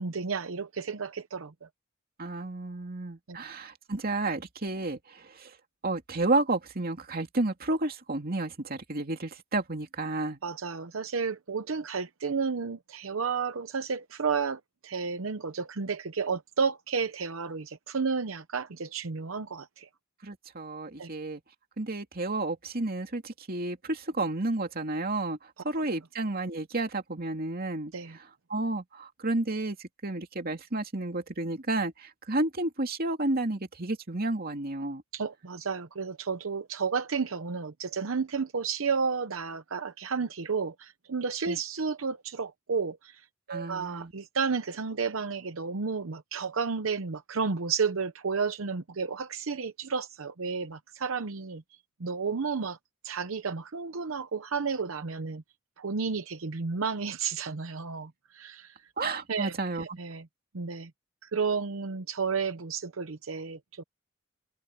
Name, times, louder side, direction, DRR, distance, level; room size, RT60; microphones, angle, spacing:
voice 1, 0.0-1.7 3.3-3.4 10.4-19.9 21.0-21.1 27.9-28.2 35.1-52.8 53.0-55.4 55.8-58.9 59.3-60.3 60.5-60.9 61.2-63.8, right 5 dB, 75° right, 0.8 m, -32 dB
voice 2, 2.2-5.6 5.8-10.4 20.2-21.4 21.8-35.0 41.5-41.6 43.5-44.1 59.0-60.0, right 2 dB, 45° right, 2.5 m, -31 dB
head